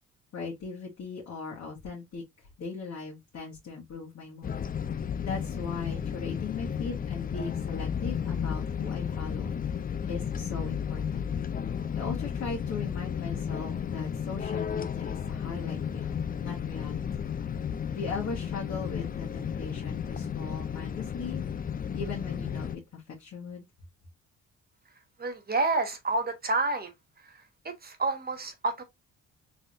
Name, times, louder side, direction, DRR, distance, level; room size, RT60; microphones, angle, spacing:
voice 1, 0.3-2.2 2.6-4.5 5.2-9.5 10.1-11.3 11.9-17.0 17.9-21.4 21.9-23.6, left 4 dB, 55° left, 1.6 m, -39 dB
sound 1, 4.4-22.8, left 7 dB, 30° left, 0.4 m, -33 dB
voice 2, 25.2-26.9 27.6-28.8, right 3 dB, 30° right, 1.2 m, -29 dB
3.9 x 3.3 x 2.6 m
cardioid pair, 90°, 30 cm